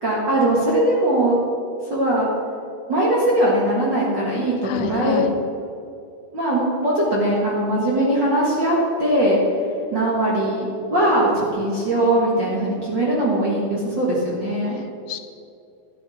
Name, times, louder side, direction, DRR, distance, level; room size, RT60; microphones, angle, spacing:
voice 1, 0.0-1.4 1.9-2.3 2.9-5.2 6.3-9.4 9.9-14.8, right 1 dB, 40° right, -5 dB, 1.7 m, -20 dB
voice 2, 4.6-5.3 14.7-15.2, left 11 dB, 90° left, 8 dB, 2.7 m, -30 dB
11.5 x 11.0 x 4.3 m, 2.5 s
omnidirectional pair, 4.4 m